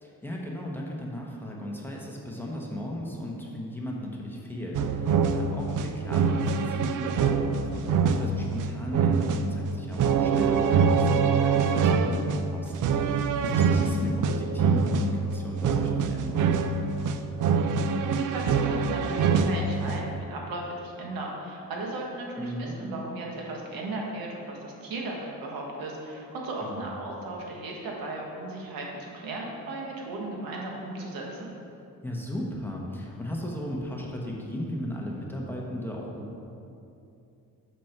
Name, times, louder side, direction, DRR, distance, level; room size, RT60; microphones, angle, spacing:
voice 1, 0.0-16.6 22.4-22.7 26.6-26.8 32.0-36.4, equal, 5° left, -3 dB, 1.0 m, -36 dB
sound 1, 4.7-20.2, right 5 dB, 65° right, 0.5 m, -25 dB
voice 2, 17.8-31.5, right 2 dB, 80° right, -1 dB, 1.5 m, -36 dB
5.9 x 5.9 x 5.9 m, 2.7 s
cardioid pair, 130°, 34 cm